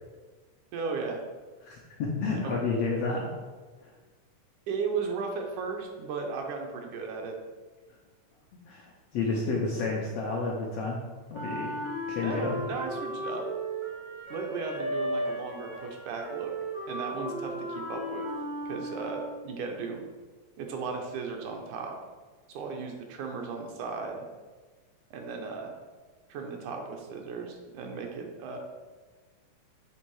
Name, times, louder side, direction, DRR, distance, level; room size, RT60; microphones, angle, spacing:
voice 1, 0.7-1.2 2.4-2.6 4.7-7.4 12.2-13.5 14.3-16.6 16.9-18.3 18.7-20.0 20.6-22.0 22.5-24.2 25.1-25.7 26.3-28.6, right 4 dB, 75° right, 2 dB, 2.2 m, -35 dB
voice 2, 1.6-3.3 3.8-3.9 8.7-11.0 11.3-11.7 12.1-12.5, left 3 dB, 75° left, -2 dB, 1.5 m, -30 dB
Wind instrument woodwind instrument, 11.3-19.5, right 1 dB, 45° right, 0.9 m, -35 dB
7.3 x 3.4 x 4.7 m, 1.4 s
omnidirectional pair, 3.6 m